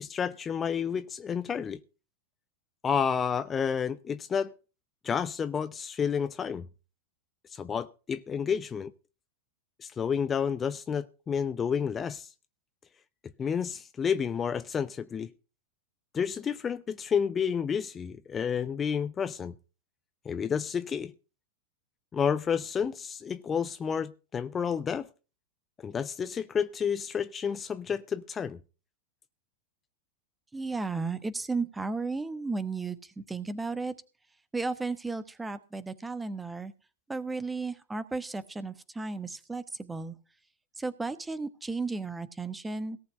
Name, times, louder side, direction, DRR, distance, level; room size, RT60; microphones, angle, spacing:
voice 1, 0.0-1.8 2.8-4.5 5.0-6.7 7.5-8.9 9.8-12.3 13.4-15.3 16.1-19.5 20.2-21.1 22.1-25.1 25.8-28.6, left 7 dB, 20° left, 0.7 m, -30 dB
voice 2, 30.5-33.9 34.5-36.7 37.1-40.1 40.8-43.0, right 3 dB, 10° right, 1.1 m, -34 dB
18.0 x 7.0 x 5.4 m
figure-of-eight pair, 90°, 0 cm